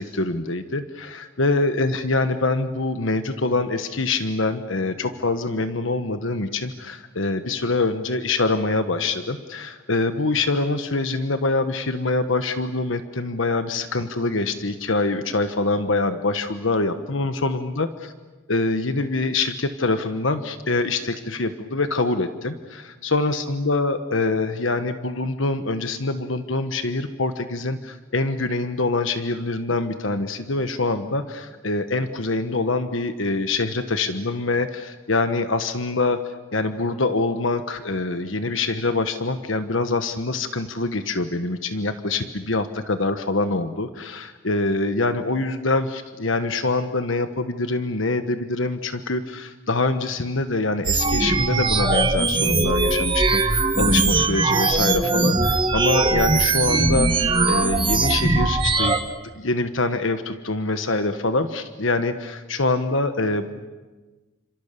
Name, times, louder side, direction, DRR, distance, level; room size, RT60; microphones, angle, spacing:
voice 1, 0.0-18.1 18.5-59.0 59.4-63.6, left 3 dB, 75° left, 9 dB, 1.3 m, -25 dB
sound 1, 50.8-59.0, right 3 dB, 25° right, 1.6 m, -20 dB
29.5 x 26.5 x 6.9 m, 1.2 s
head